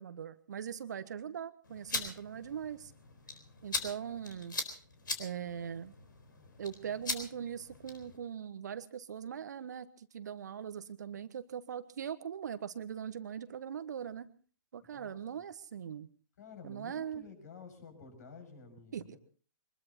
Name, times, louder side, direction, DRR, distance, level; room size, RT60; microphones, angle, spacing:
voice 1, 0.0-2.9 3.6-4.6 5.2-5.9 6.6-14.3 14.7-16.1 16.6-17.2 18.9-19.2, right 8 dB, 55° right, 12 dB, 1.3 m, -41 dB
sound 1, 1.6-8.2, left 3 dB, 70° left, 4.0 m, -41 dB
voice 2, 14.9-15.4 16.4-19.2, left 5 dB, 55° left, 7 dB, 6.6 m, -52 dB
23.5 x 21.0 x 2.9 m, 0.41 s
figure-of-eight pair, 125°, 11 cm